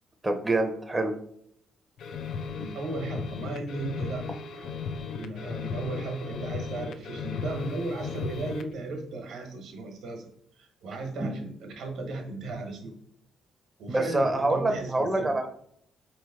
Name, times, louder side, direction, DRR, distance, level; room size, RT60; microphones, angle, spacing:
voice 1, 0.2-1.1 13.9-15.5, right 2 dB, 20° right, 5 dB, 0.6 m, -26 dB
sound 1, 2.0-8.7, left 5 dB, 70° left, 0.4 m, -36 dB
voice 2, 2.5-4.3 4.5-4.7 5.1-10.3 10.6-12.9 13.8-15.3, right 2 dB, 80° right, 4 dB, 1.1 m, -36 dB
4.2 x 3.2 x 3.5 m, 0.67 s
cardioid pair, 90°, 0 cm